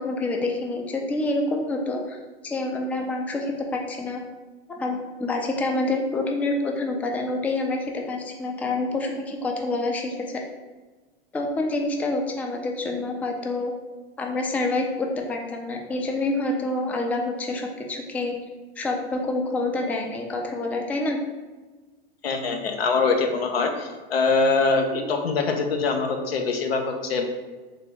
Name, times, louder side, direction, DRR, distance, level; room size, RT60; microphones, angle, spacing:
voice 1, 0.0-2.2 2.4-4.2 4.8-10.4 11.3-13.7 14.2-18.4 18.8-21.2, left 2 dB, 5° left, 1 dB, 0.4 m, -27 dB
voice 2, 22.2-27.3, left 4 dB, 75° left, 4 dB, 0.8 m, -23 dB
3.7 x 3.2 x 3.7 m, 1.2 s
hypercardioid pair, 100°, 30 cm